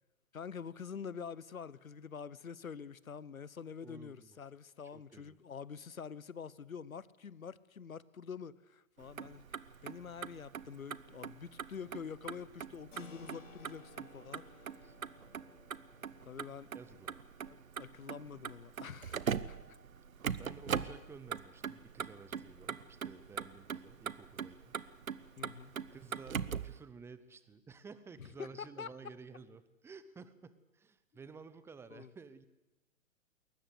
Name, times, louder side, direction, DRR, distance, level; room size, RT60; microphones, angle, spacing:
voice 1, 0.3-14.9 16.3-16.7 17.5-19.8 25.4-25.7 28.2-28.9 31.9-32.1, left 6 dB, 90° left, 1.0 m, -47 dB
voice 2, 3.8-4.4 4.9-5.4 14.8-15.0 16.7-17.2 20.3-24.8 25.9-32.5, right 4 dB, 5° right, 0.7 m, -53 dB
Motor vehicle (road), 9.0-26.8, right 7 dB, 80° right, 1.1 m, -42 dB
Keyboard (musical), 12.9-23.3, left 3 dB, 65° left, 6.0 m, -61 dB
21.5 x 19.0 x 8.2 m
hypercardioid pair, 125°, 40 cm